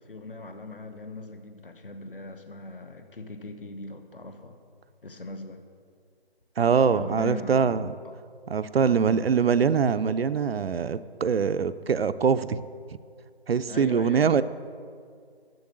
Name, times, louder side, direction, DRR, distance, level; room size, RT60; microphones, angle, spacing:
voice 1, 0.0-4.6 5.0-5.6 6.8-7.9 8.9-9.2 13.7-14.3, left 3 dB, 60° left, 7 dB, 1.0 m, -39 dB
voice 2, 6.6-7.9 8.5-12.6 13.5-14.4, right 6 dB, 70° right, 13 dB, 0.5 m, -23 dB
7.8 x 7.1 x 7.4 m, 2.2 s
figure-of-eight pair, 170°, 31 cm